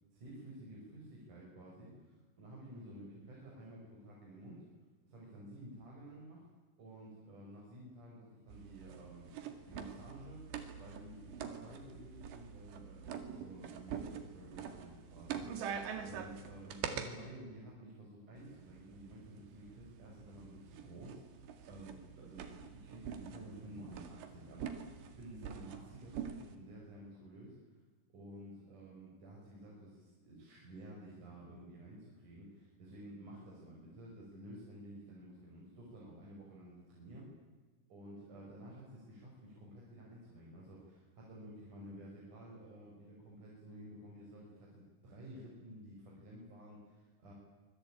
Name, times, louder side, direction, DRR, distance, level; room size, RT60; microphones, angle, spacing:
voice 1, 0.1-4.7 5.0-6.4 6.8-10.4 10.8-21.2 21.7-27.6 28.1-37.3 37.9-47.3, right 1 dB, 40° right, -3 dB, 6.9 m, -52 dB
sound 1, 8.5-17.1 18.4-26.6, right 7 dB, 65° right, 4.0 m, -46 dB
25.5 x 22.0 x 9.0 m, 1.3 s
omnidirectional pair, 5.8 m